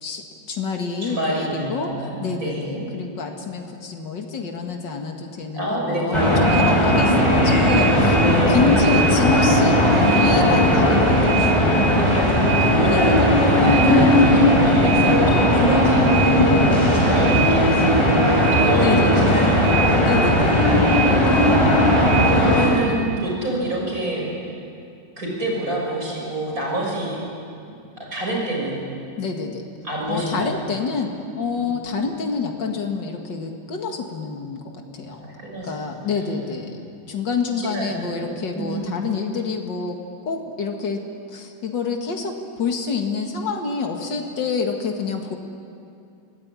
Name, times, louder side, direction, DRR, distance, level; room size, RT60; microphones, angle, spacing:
voice 1, 0.0-1.9 2.2-8.2 8.5-11.5 12.8-13.3 18.8-19.4 20.0-20.6 29.2-29.6 30.1-35.2 35.6-40.0 40.3-41.0 41.3-45.4, left 5 dB, 85° left, 3 dB, 2.6 m, -27 dB
voice 2, 1.0-2.9 5.5-6.4 8.1-8.7 10.3-10.7 11.9-13.1 13.6-20.0 20.6-24.5 25.2-27.2 27.7-28.8 29.8-30.5 31.6-31.7 35.2-35.9 37.6-39.0, right 1 dB, 50° right, -2 dB, 6.8 m, -28 dB
sound 1, 6.1-22.7, equal, 15° left, 5.4 m, -17 dB
25.5 x 18.5 x 9.8 m, 2.4 s
omnidirectional pair, 1.9 m